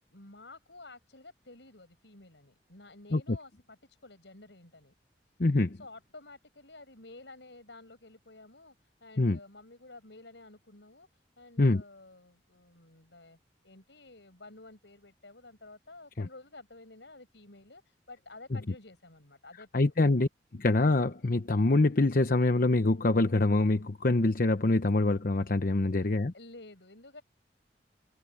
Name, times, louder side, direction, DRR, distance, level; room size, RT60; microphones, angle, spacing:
voice 1, 0.1-4.9 5.7-13.4 13.6-19.9 26.3-27.2, left 2 dB, 85° left, 6.3 m, -52 dB
voice 2, 5.4-5.8 9.2-9.4 11.6-11.8 16.2-16.3 19.7-26.3, left 2 dB, 55° left, 0.9 m, -25 dB
head